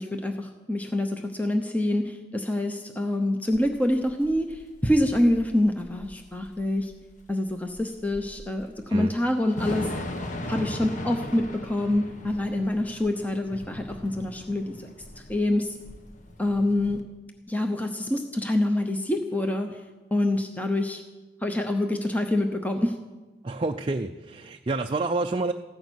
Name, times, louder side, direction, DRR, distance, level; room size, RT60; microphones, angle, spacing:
voice 1, 0.0-6.9 7.3-9.9 10.5-14.9 15.2-15.8 16.4-17.0 17.5-19.7 20.1-21.0 21.4-22.9, left 1 dB, 10° left, 5 dB, 0.8 m, -26 dB
Thunder / Rain, 3.5-17.0, left 1 dB, 45° left, 1.3 m, -39 dB
voice 2, 23.4-25.5, right 3 dB, 30° right, 5 dB, 0.5 m, -28 dB
15.5 x 13.5 x 6.3 m, 1.2 s
head